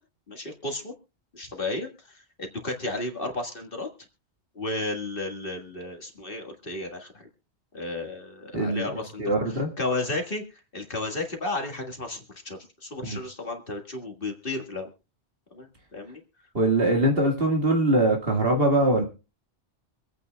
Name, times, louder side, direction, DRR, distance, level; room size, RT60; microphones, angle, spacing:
voice 1, 0.3-0.9 1.3-3.9 4.6-7.3 7.7-14.9 15.5-16.2, left 2 dB, 50° left, 3 dB, 2.0 m, -33 dB
voice 2, 8.5-8.9 9.2-9.7 13.0-13.2 16.5-19.0, right 1 dB, 60° right, 2 dB, 2.1 m, -22 dB
25.0 x 9.0 x 2.3 m, 0.31 s
omnidirectional pair, 1.1 m